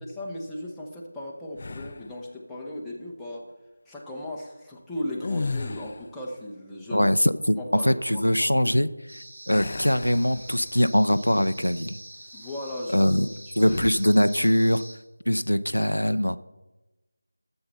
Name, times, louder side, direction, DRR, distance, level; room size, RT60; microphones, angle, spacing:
voice 1, 0.2-3.5 3.9-7.1 7.5-8.8 12.3-13.3 13.6-13.8, left 1 dB, 5° left, -6 dB, 1.0 m, -37 dB
sound 1, 1.6-2.2 5.1-6.2 9.5-10.9 11.4-11.6 13.6-14.1, left 3 dB, 40° left, 0.3 m, -34 dB
voice 2, 6.9-7.6 7.8-8.9 9.5-12.0 12.9-13.3 13.6-14.8 15.3-16.4, equal, 90° left, 13 dB, 0.6 m, -22 dB
sound 2, 9.1-14.9, right 1 dB, 40° right, 2.7 m, -45 dB
13.5 x 7.9 x 4.1 m, 1.1 s
figure-of-eight pair, 165°, 0 cm